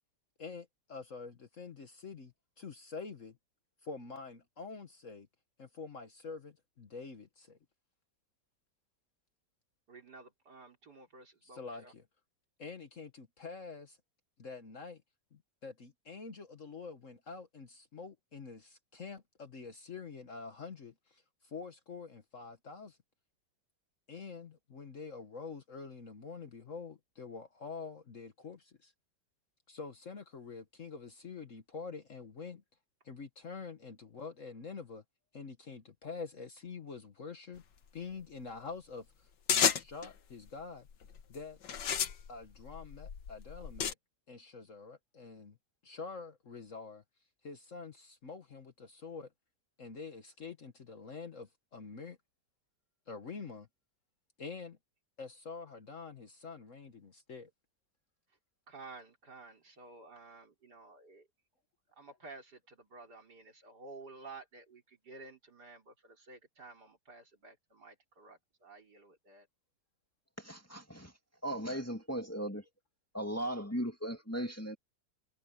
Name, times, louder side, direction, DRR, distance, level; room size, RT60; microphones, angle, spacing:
voice 1, 0.4-3.4 3.8-5.3 5.6-7.6 11.4-12.0 12.6-14.0 14.4-15.0 15.3-23.0 24.1-28.9 29.7-32.6 33.0-35.0 35.3-37.6 37.9-39.3 39.5-40.9 41.3-41.6 42.3-43.9 44.3-45.6 45.8-47.0 47.4-49.3 49.8-52.2 53.1-53.7 54.4-54.8 55.2-57.5, left 4 dB, 50° left, 1.6 m, -46 dB
voice 2, 9.9-11.9 58.7-61.2 62.0-69.5, right 3 dB, 65° right, 4.5 m, -53 dB
sound 1, 39.5-40.1 40.9-41.2 41.6-43.9, left 8 dB, 75° left, 1.9 m, -31 dB
voice 3, 70.4-71.1 71.4-72.6 73.1-74.8, right 1 dB, 10° left, 2.3 m, -37 dB
omnidirectional pair, 1.9 m